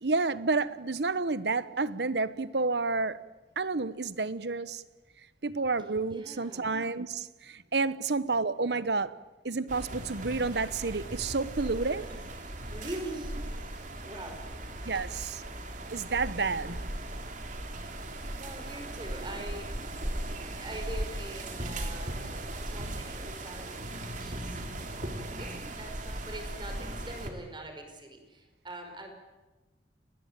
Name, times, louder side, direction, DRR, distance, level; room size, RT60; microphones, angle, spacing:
voice 1, 0.0-3.2 3.6-4.8 5.4-9.2 9.4-12.1 14.8-15.4 15.9-16.8, right 3 dB, 70° right, 1.0 m, -30 dB
voice 2, 6.1-6.8 11.8-12.2 12.6-14.5 14.9-15.1 15.4-15.5 16.6-17.0 18.4-19.7 20.6-22.2 22.6-23.8 24.2-24.6 25.4-29.1, right 1 dB, 25° right, 5.4 m, -43 dB
sound 1, 9.7-27.3, right 1 dB, 45° right, 3.3 m, -38 dB
29.5 x 20.0 x 9.1 m
head